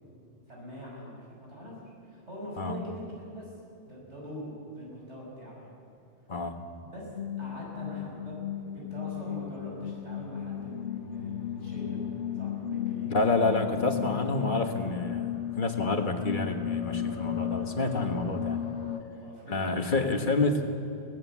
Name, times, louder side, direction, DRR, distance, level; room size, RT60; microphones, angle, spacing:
voice 1, 0.0-1.7 2.0-3.5 3.9-5.8 6.8-8.4 8.7-12.1 12.3-13.7 19.1-19.8, equal, 75° right, -3 dB, 6.6 m, -43 dB
sound 1, 7.1-19.0, left 9 dB, 80° left, 1.5 m, -35 dB
voice 2, 13.1-18.6 19.5-20.6, left 3 dB, 45° left, 5 dB, 1.6 m, -28 dB
21.5 x 18.0 x 7.4 m, 2.6 s
omnidirectional pair, 1.2 m